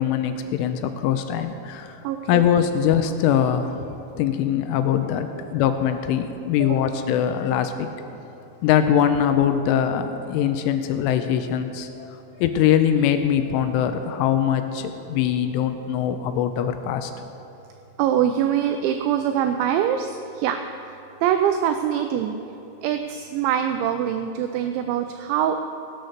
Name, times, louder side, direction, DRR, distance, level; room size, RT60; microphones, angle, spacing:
voice 1, 0.0-2.0 2.3-3.9 4.2-7.9 8.6-12.2 12.4-17.1, left 9 dB, 85° left, 8 dB, 3.1 m, -22 dB
voice 2, 2.0-2.4 6.6-6.8 18.0-20.6 20.9-22.3 22.8-25.6, right 9 dB, 85° right, 7 dB, 2.6 m, -24 dB
17.0 x 8.2 x 6.5 m, 2.7 s
omnidirectional pair, 5.9 m